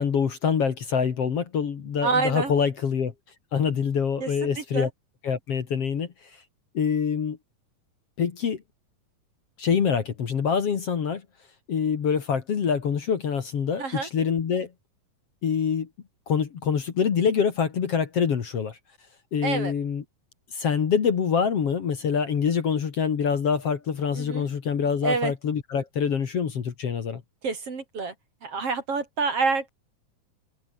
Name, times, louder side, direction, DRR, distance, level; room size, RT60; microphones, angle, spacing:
voice 1, 0.0-3.1 3.5-4.9 5.2-6.1 6.7-7.4 8.2-8.6 9.6-11.2 11.7-14.7 15.4-15.9 16.3-18.8 19.3-20.0 20.5-27.2, left 6 dB, 50° left, 2.7 m, -25 dB
voice 2, 2.0-2.5 4.2-4.3 4.6-4.9 13.8-14.1 19.4-19.7 24.1-24.5 25.0-25.3 27.4-28.1 28.4-29.7, right 4 dB, 45° right, 4.2 m, -27 dB
omnidirectional pair, 3.8 m